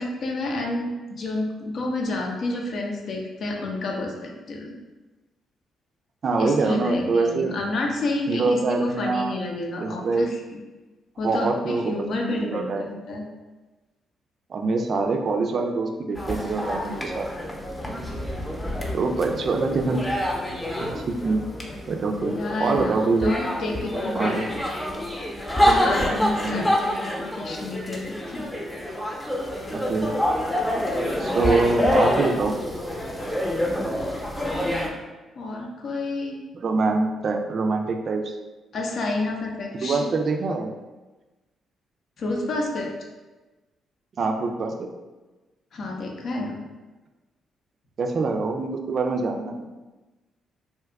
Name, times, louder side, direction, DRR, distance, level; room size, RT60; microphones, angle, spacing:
voice 1, 0.0-4.7 6.4-10.6 11.2-13.2 22.3-23.0 23.2-24.4 25.6-28.5 35.4-36.4 38.7-40.1 42.2-42.9 45.7-46.6, left 2 dB, 60° left, 1 dB, 0.6 m, -30 dB
voice 2, 6.2-7.6 8.3-9.4 9.8-10.3 11.2-13.0 14.5-17.3 18.9-20.0 20.8-21.4 21.9-22.3 22.6-23.3 24.1-24.5 26.3-26.7 29.7-30.1 31.2-32.6 36.5-38.2 39.7-40.7 44.2-44.9 48.0-49.7, right 3 dB, 55° right, 3 dB, 0.4 m, -24 dB
sound 1, 16.1-34.9, equal, 15° left, 0.8 m, -27 dB
2.8 x 2.3 x 3.4 m, 1.2 s
supercardioid pair, 55°, 0 cm